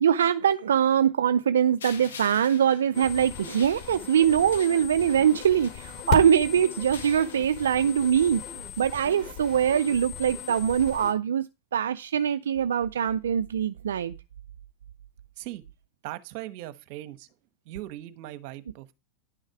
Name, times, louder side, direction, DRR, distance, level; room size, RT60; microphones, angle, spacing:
voice 1, 0.0-8.4 8.8-11.5 11.7-14.1, right 8 dB, 90° right, 0.4 m, -23 dB
sound 1, 1.8-6.3 6.8-8.1, left 6 dB, 90° left, 1.7 m, -46 dB
sound 2, 2.9-11.1, left 8 dB, 50° left, 2.8 m, -37 dB
voice 2, 16.0-17.3 17.7-18.9, right 15 dB, 60° right, 1.1 m, -39 dB
11.0 x 6.4 x 4.7 m
hypercardioid pair, 105°, 0 cm